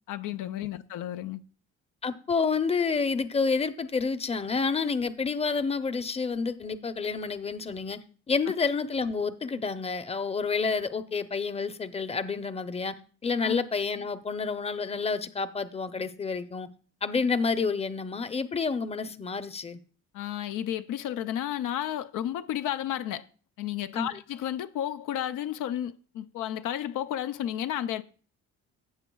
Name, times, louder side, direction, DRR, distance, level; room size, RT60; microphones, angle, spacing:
voice 1, 0.1-1.4 13.4-13.6 20.1-23.2 23.6-28.0, left 11 dB, 85° left, 0.6 m, -32 dB
voice 2, 2.0-8.0 8.3-12.9 13.2-16.7 17.0-19.8 23.9-24.1, left 4 dB, 20° left, 0.7 m, -29 dB
15.5 x 7.4 x 2.3 m
cardioid pair, 90°, 30 cm